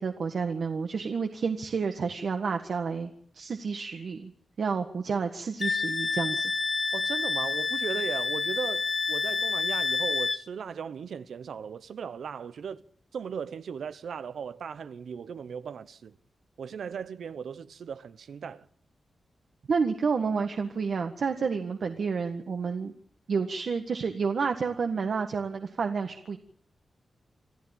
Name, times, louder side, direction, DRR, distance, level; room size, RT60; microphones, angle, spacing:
voice 1, 0.0-4.3 4.6-6.5 19.7-22.9 23.3-26.4, right 5 dB, 65° right, 1.6 m, -30 dB
Wind instrument woodwind instrument, 5.6-10.4, left 4 dB, 35° left, 1.1 m, -28 dB
voice 2, 6.9-12.8 13.1-16.2 16.6-18.7, right 7 dB, 90° right, 0.9 m, -37 dB
27.0 x 14.0 x 9.0 m
wide cardioid pair, 115°, 0 cm